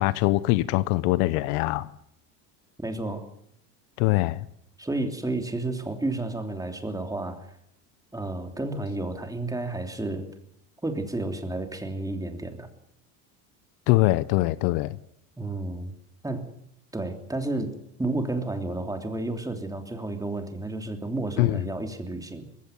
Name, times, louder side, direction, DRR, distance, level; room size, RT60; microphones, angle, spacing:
voice 1, 0.0-1.9 4.0-4.5 13.9-15.0 21.4-21.6, left 18 dB, 75° left, 1.0 m, -23 dB
voice 2, 2.8-3.2 4.8-7.4 8.1-10.3 10.8-12.7 15.4-15.9 16.2-16.5 16.9-22.5, right 2 dB, 10° right, 3.1 m, -31 dB
20.0 x 16.0 x 9.3 m
supercardioid pair, 110°, 45 cm